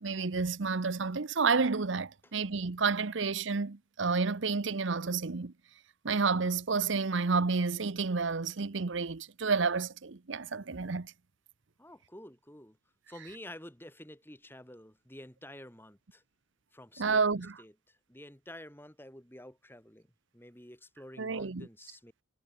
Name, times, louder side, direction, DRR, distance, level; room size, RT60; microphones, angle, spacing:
voice 1, 0.0-5.5 6.0-11.1 17.0-17.5 21.2-21.7, right 4 dB, 70° right, 0.8 m, -30 dB
voice 2, 11.8-12.8 13.1-16.2 16.7-17.2 17.6-20.1 20.3-22.1, left 1 dB, 10° left, 4.8 m, -50 dB
head